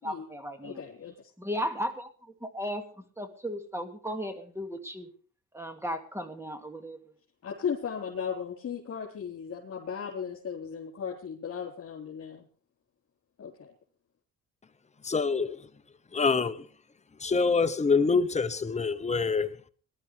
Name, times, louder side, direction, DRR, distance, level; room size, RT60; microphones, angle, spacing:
voice 1, 0.0-0.8 1.4-2.8 3.2-5.1 5.5-7.0, equal, 10° right, 2.4 m, -35 dB
voice 2, 0.6-1.3 7.4-12.4 13.4-13.7, left 7 dB, 55° left, 4.2 m, -36 dB
voice 3, 15.0-15.7 16.1-16.7 17.2-19.7, left 4 dB, 20° left, 1.0 m, -26 dB
21.0 x 12.5 x 3.4 m
cardioid pair, 90°, 30 cm